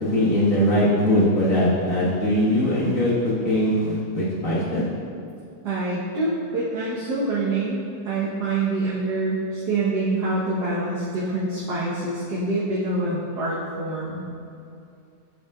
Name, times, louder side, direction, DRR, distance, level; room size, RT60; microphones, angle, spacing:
voice 1, 0.0-4.8, left 1 dB, 50° left, -8 dB, 2.2 m, -21 dB
voice 2, 5.6-14.2, right 2 dB, 75° right, -9 dB, 1.8 m, -26 dB
11.0 x 7.3 x 2.5 m, 2.5 s
omnidirectional pair, 1.8 m